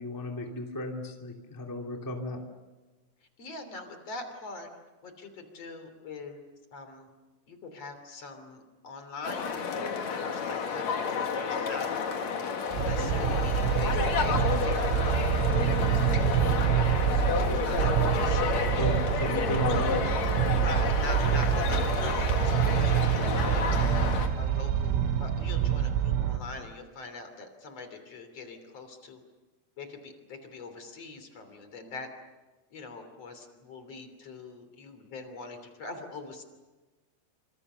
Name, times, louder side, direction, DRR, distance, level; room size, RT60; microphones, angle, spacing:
voice 1, 0.0-2.4 18.8-20.0, left 1 dB, 20° left, 2 dB, 0.6 m, -35 dB
voice 2, 3.4-4.7 5.0-6.4 6.7-7.1 7.5-11.9 12.6-15.0 15.4-20.0 20.4-23.8 24.4-29.2 29.8-32.1 32.7-36.4, left 3 dB, 35° left, 7 dB, 3.5 m, -43 dB
sound 1, 9.2-24.3, left 6 dB, 50° left, 2.3 m, -30 dB
sound 2, 12.7-26.4, right 9 dB, 85° right, 4.0 m, -26 dB
28.5 x 26.5 x 6.9 m, 1.2 s
omnidirectional pair, 5.8 m